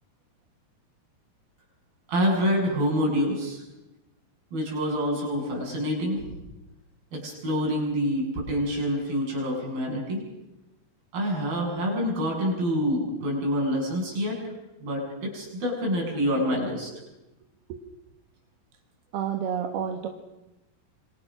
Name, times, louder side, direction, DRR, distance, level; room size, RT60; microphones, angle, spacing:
voice 1, 2.1-3.6 4.5-6.3 7.1-10.2 11.1-14.4 14.8-16.9, equal, 70° right, -2 dB, 9.3 m, -27 dB
voice 2, 19.1-20.1, right 8 dB, 90° right, 4 dB, 3.6 m, -29 dB
28.0 x 25.5 x 6.4 m, 0.98 s
omnidirectional pair, 4.4 m